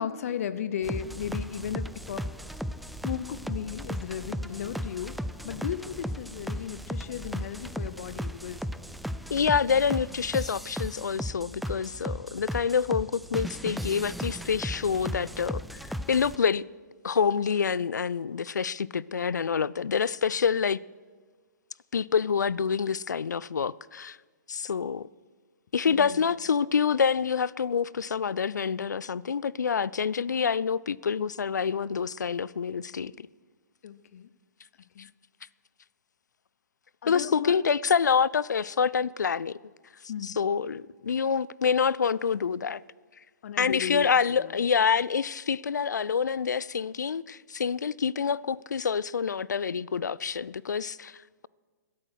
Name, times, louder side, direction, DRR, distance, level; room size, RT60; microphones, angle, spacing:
voice 1, 0.0-2.3 3.0-5.2 5.4-8.7 11.7-11.8 25.9-26.4 33.8-34.3 34.9-35.1 37.0-37.6 40.1-40.4 43.4-44.5, left 8 dB, 55° left, 0.8 m, -35 dB
sound 1, 0.8-16.4, equal, ahead, 0.3 m, -36 dB
voice 2, 9.3-16.7 17.0-20.8 21.9-24.2 24.5-25.1 25.7-33.3 37.1-39.6 40.2-42.8 43.6-51.5, left 6 dB, 75° left, 0.4 m, -27 dB
22.5 x 8.6 x 6.4 m
figure-of-eight pair, 125°, 10 cm